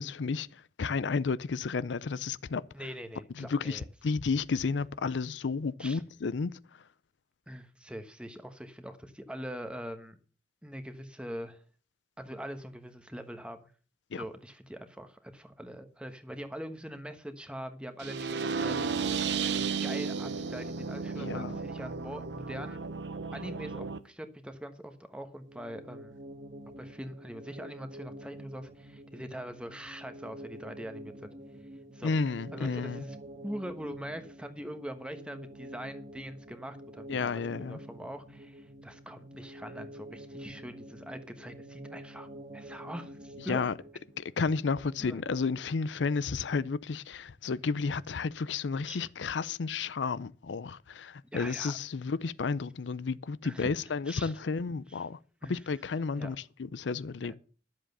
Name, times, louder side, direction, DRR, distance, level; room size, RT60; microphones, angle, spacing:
voice 1, 0.0-2.6 3.4-6.5 14.1-14.2 21.2-21.5 32.0-33.0 37.1-37.8 43.5-43.7 44.2-57.3, left 4 dB, 90° left, 0.5 m, -32 dB
voice 2, 2.7-3.9 5.8-6.0 7.5-10.2 10.6-11.6 12.2-13.7 14.1-18.8 19.4-22.8 23.3-26.2 26.8-31.3 31.9-32.1 32.5-33.2 33.4-42.3 42.5-43.6 45.0-45.2 48.9-49.1 51.3-51.8 53.4-53.7 54.1-54.3 54.9-55.0 55.4-55.6 56.1-56.3 57.2-57.4, equal, 5° right, 1.1 m, -42 dB
sound 1, 18.0-24.0, right 5 dB, 75° right, 0.8 m, -33 dB
sound 2, 25.4-44.3, equal, 45° right, 1.3 m, -48 dB
11.5 x 7.6 x 6.7 m
head